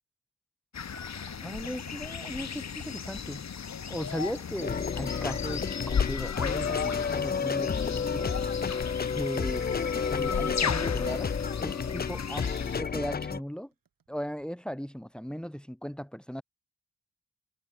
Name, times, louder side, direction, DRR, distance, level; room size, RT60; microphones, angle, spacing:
sound 1, 0.7-12.8, left 7 dB, 50° left, 1.0 m, -35 dB
sound 2, 0.9-13.2 13.7-14.4 15.4-15.6, right 7 dB, 70° right, 2.1 m, -58 dB
voice 1, 1.4-3.4 3.9-8.4 9.1-9.7 10.0-11.3 11.6-13.7 14.1-16.4, equal, ahead, 1.4 m, -37 dB
sound 3, 4.6-13.4, left 6 dB, 30° left, 0.5 m, -31 dB
cardioid pair, 40°, 35 cm